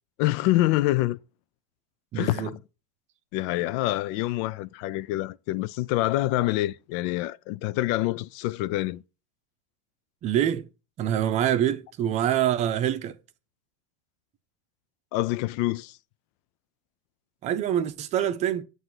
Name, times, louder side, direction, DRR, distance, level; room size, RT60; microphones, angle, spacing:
voice 1, 0.2-1.2 2.1-2.6 3.3-9.0 15.1-16.0, left 17 dB, 60° left, 0.4 m, -26 dB
voice 2, 2.1-2.5 10.2-10.7 11.0-13.2 17.4-18.6, right 10 dB, 40° right, 0.7 m, -25 dB
7.9 x 2.7 x 5.9 m
hypercardioid pair, 100°, 17 cm